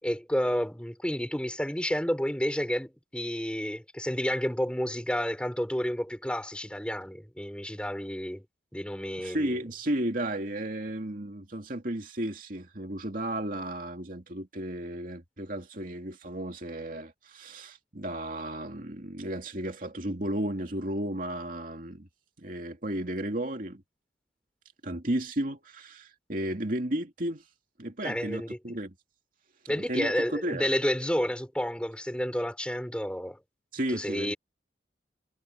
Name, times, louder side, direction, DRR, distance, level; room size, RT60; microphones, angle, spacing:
voice 1, 0.0-8.4 8.7-9.6 28.0-28.6 29.7-33.4 33.9-34.3, equal, 5° left, 4.7 m, -30 dB
voice 2, 9.2-22.1 22.4-23.8 24.8-27.4 27.8-28.9 29.6-30.7 33.7-34.3, right 1 dB, 50° right, 2.5 m, -33 dB
head